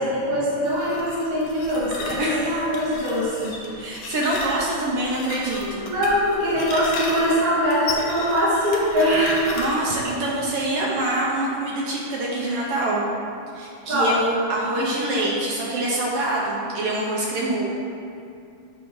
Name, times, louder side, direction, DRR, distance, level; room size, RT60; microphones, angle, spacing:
voice 1, 0.0-3.8 5.6-9.7 12.4-12.7 13.9-14.2, equal, 55° right, -7 dB, 1.0 m, -22 dB
sound 1, 0.7-10.0, left 3 dB, 75° left, 1.6 m, -34 dB
voice 2, 3.8-5.8 9.6-13.0 13.5-17.7, right 1 dB, 85° right, -3 dB, 1.3 m, -25 dB
7.4 x 3.6 x 4.7 m, 2.5 s
omnidirectional pair, 3.5 m